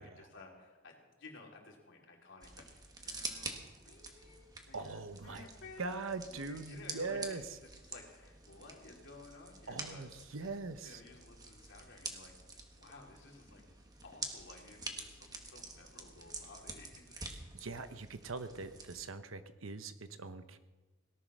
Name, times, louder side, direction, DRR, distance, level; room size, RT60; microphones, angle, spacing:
voice 1, 0.0-10.1 10.4-10.5 10.8-12.3 12.7-13.6 14.0-17.2, left 3 dB, 65° left, 0 dB, 3.4 m, -55 dB
sound 1, 2.4-19.0, right 3 dB, 20° right, 1.7 m, -48 dB
voice 2, 4.7-5.5 5.8-7.6 9.7-11.0 17.5-20.6, right 3 dB, 75° right, 10 dB, 1.0 m, -42 dB
18.0 x 11.0 x 6.3 m, 1.2 s
head